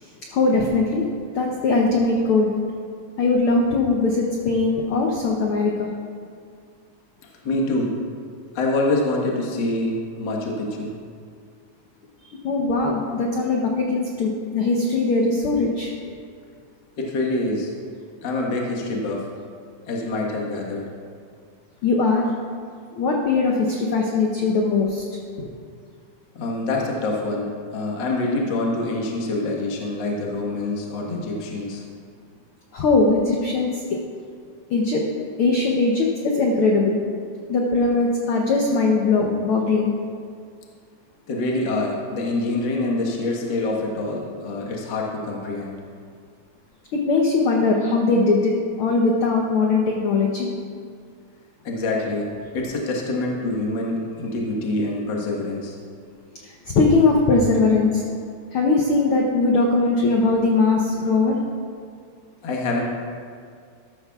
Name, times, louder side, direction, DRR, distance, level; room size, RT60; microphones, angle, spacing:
voice 1, 0.0-1.0 1.3-2.5 3.2-5.9 12.4-15.9 21.8-22.2 22.9-25.0 32.7-33.8 34.7-35.0 35.4-37.0 37.5-39.9 46.9-50.5 56.4-58.0 58.5-61.4, left 3 dB, 85° left, 0 dB, 1.2 m, -20 dB
voice 2, 7.4-7.9 8.5-10.9 17.0-17.7 18.2-19.2 19.9-20.8 25.4-25.5 26.3-31.8 41.3-45.8 51.6-55.7 62.4-62.8, left 2 dB, 50° left, -2 dB, 1.6 m, -25 dB
14.0 x 12.5 x 2.4 m, 2.1 s
omnidirectional pair, 3.6 m